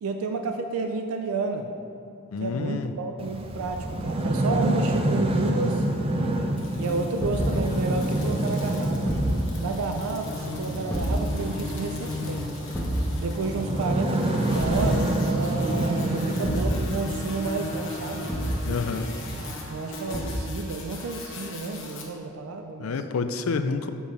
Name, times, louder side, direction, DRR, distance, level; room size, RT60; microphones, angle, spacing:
voice 1, 0.0-1.7 2.4-5.8 6.7-9.1 9.6-12.6 13.2-18.3 19.7-22.9, right 3 dB, 80° right, 6 dB, 0.4 m, -31 dB
voice 2, 2.3-2.9 18.6-19.1 22.8-23.9, left 4 dB, 75° left, 9 dB, 0.4 m, -28 dB
sound 1, 3.2-19.5, right 1 dB, 25° right, 0.5 m, -28 dB
sound 2, 6.6-22.0, left 1 dB, 55° left, 1.0 m, -37 dB
Thump thud, 7.2-7.5 9.0-9.4 10.9-11.2 12.7-13.1 14.6-14.9 16.4-16.8 18.3-18.6 20.1-20.5, equal, 15° left, 1.1 m, -28 dB
6.9 x 4.6 x 5.3 m, 2.6 s
head